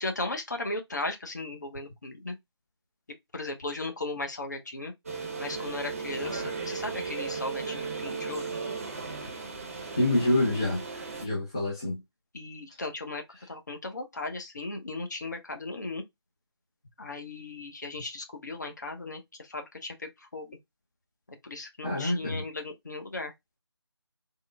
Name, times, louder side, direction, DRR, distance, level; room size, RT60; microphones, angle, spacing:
voice 1, 0.0-2.4 3.3-4.9 5.4-8.5 12.3-16.0 17.0-20.6 21.4-23.3, left 2 dB, 40° left, 0.8 m, -36 dB
sound 1, 5.1-11.3, right 5 dB, 30° right, 0.8 m, -36 dB
voice 2, 10.0-10.8 11.2-12.0 21.8-22.4, left 1 dB, 10° left, 0.4 m, -26 dB
3.7 x 2.1 x 3.3 m
figure-of-eight pair, 160°, 14 cm